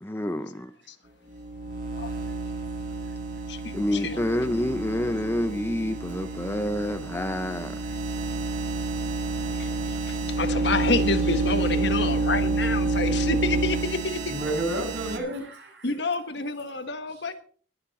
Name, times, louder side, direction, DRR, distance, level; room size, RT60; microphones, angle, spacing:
voice 1, 0.0-0.7 3.7-7.8, left 1 dB, 10° left, 0.6 m, -28 dB
sound 1, 1.3-15.2, right 3 dB, 45° right, 2.0 m, -29 dB
voice 2, 3.5-4.2 9.1-14.3 15.8-17.3, left 3 dB, 65° left, 1.5 m, -29 dB
voice 3, 14.3-15.9, right 1 dB, 65° right, 6.8 m, -30 dB
21.5 x 7.2 x 4.2 m
head